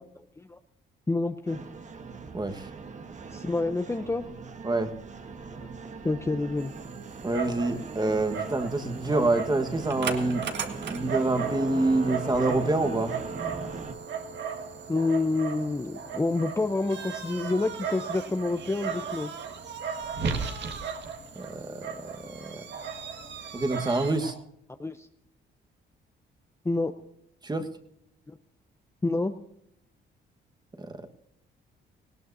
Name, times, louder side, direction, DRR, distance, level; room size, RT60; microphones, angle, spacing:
voice 1, 1.1-1.6 3.3-4.2 5.6-5.7 6.0-6.7 14.9-19.3 24.8-25.1 26.6-26.9 28.3-28.4 29.0-29.3, left 2 dB, 15° left, 8 dB, 0.7 m, -28 dB
sound 1, 1.5-14.0, right 4 dB, 35° right, 1.3 m, -40 dB
voice 2, 2.3-2.6 4.6-4.9 7.2-10.5 10.9-13.1 21.3-22.6 23.5-24.3 27.4-27.7 30.8-31.1, right 2 dB, 20° right, 7 dB, 1.5 m, -27 dB
Dog, 6.6-24.3, right 6 dB, 60° right, 1.7 m, -36 dB
19.0 x 17.0 x 2.8 m, 0.73 s
cardioid pair, 90°, 20 cm